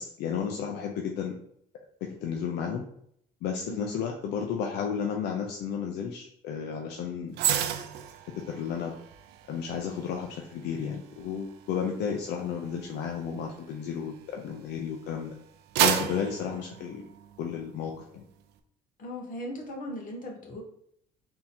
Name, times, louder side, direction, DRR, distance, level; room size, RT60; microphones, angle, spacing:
voice 1, 0.0-1.4 2.2-2.8 3.4-7.4 8.5-9.0 9.5-15.3 15.8-17.1 17.4-18.2, left 7 dB, 80° left, 2 dB, 0.6 m, -33 dB
voice 2, 3.6-4.0 19.0-20.6, equal, 50° left, -1 dB, 1.4 m, -38 dB
sound 1, 7.3-14.7 15.2-17.6 17.9-18.2, right 10 dB, 90° right, 0.5 m, -33 dB
3.6 x 2.8 x 4.2 m, 0.69 s
cardioid pair, 110°, 17 cm